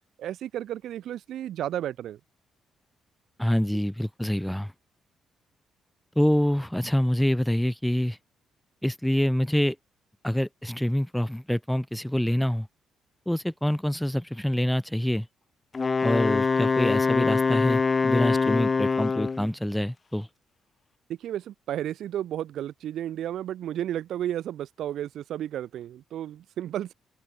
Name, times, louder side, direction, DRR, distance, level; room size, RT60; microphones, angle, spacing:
voice 1, 0.2-2.2 21.1-26.9, right 11 dB, 75° right, 1.4 m, -33 dB
voice 2, 3.4-4.7 6.2-8.2 8.8-9.8 10.2-12.7 13.3-15.3 16.0-20.3, equal, 5° left, 2.3 m, -26 dB
Wind instrument woodwind instrument, 15.7-19.5, left 4 dB, 30° left, 0.3 m, -24 dB
open air
cardioid pair, 90°, 0 cm